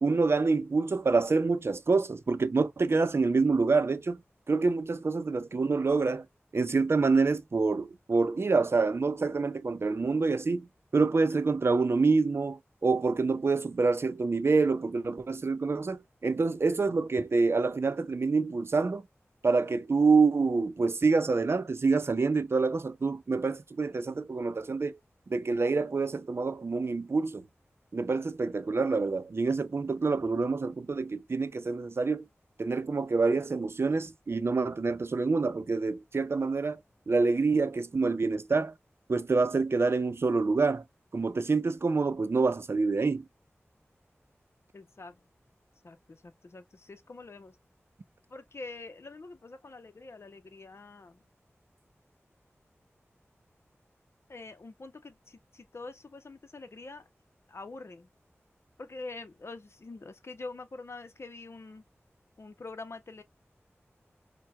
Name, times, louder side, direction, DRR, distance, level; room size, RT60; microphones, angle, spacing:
voice 1, 0.0-4.2 4.5-6.2 6.5-10.7 10.9-19.0 19.4-25.0 25.3-27.4 27.9-32.2 32.6-36.8 37.1-38.7 39.1-40.8 41.1-43.2, right 4 dB, 60° right, 0.5 m, -27 dB
voice 2, 44.7-45.2 45.8-47.5 48.3-51.2 54.3-57.0 57.5-58.1 58.8-61.8 62.4-63.2, left 3 dB, 65° left, 0.7 m, -45 dB
4.4 x 2.2 x 2.2 m
wide cardioid pair, 50°, 5 cm